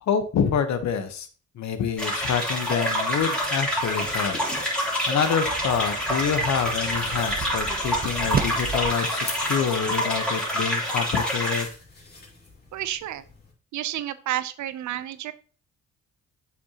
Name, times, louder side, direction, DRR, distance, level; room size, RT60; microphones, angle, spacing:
voice 1, 0.0-1.3 1.6-4.4 5.1-11.7, left 7 dB, 65° left, 10 dB, 1.1 m, -27 dB
sound 1, 1.7-13.5, left 2 dB, 35° left, 2.9 m, -45 dB
sound 2, 2.0-11.6, equal, 5° left, 3.2 m, -27 dB
sound 3, 5.5-8.9, right 5 dB, 30° right, 0.7 m, -33 dB
voice 2, 12.7-13.2 13.7-15.3, right 12 dB, 70° right, 14 dB, 0.7 m, -30 dB
7.9 x 6.1 x 2.9 m, 0.40 s
cardioid pair, 90°, 30 cm